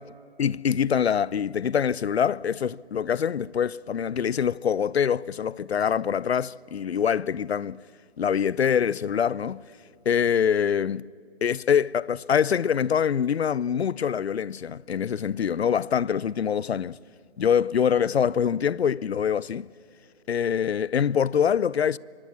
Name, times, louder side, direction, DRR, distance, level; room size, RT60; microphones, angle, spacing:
voice 1, 0.4-7.8 8.2-9.6 10.1-11.1 11.4-17.0 17.4-19.7 20.3-22.0, left 8 dB, 75° left, 0.5 m, -24 dB
25.0 x 20.0 x 7.2 m
hypercardioid pair, 180°, 32 cm